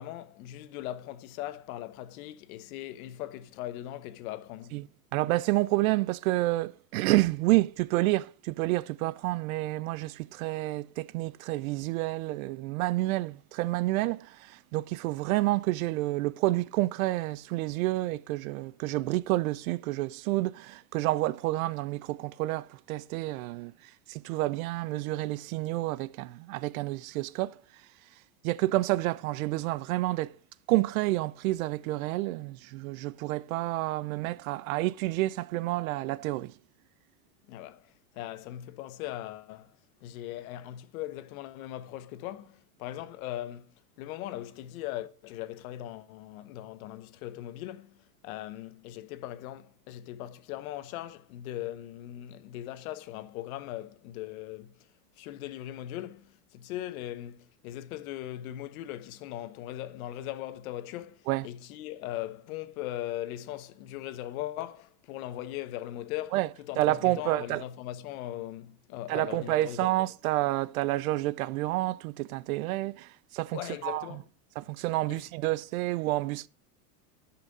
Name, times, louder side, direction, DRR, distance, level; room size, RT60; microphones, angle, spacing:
voice 1, 0.0-4.8 37.5-39.8 40.0-54.9 55.2-69.9 73.5-74.2 75.1-75.2, left 13 dB, 60° left, 0.9 m, -39 dB
voice 2, 5.1-27.6 28.4-30.4 30.7-36.5 61.3-61.5 66.3-66.5 66.8-67.6 69.1-74.1 74.6-76.5, right 18 dB, 60° right, 0.5 m, -29 dB
10.5 x 5.8 x 3.9 m
supercardioid pair, 140°, 47 cm